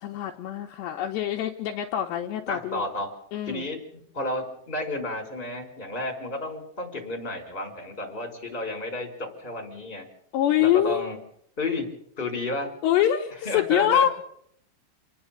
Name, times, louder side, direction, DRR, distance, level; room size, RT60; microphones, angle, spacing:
voice 1, 0.0-2.8 3.3-3.7 10.3-11.1 12.8-14.1, left 11 dB, 75° left, 2 dB, 3.0 m, -24 dB
voice 2, 2.5-3.1 3.5-10.1 10.6-11.2 11.6-11.9 12.2-12.7 13.4-14.1, left 2 dB, 10° left, 2 dB, 5.1 m, -32 dB
29.0 x 10.0 x 9.1 m, 0.69 s
omnidirectional pair, 5.5 m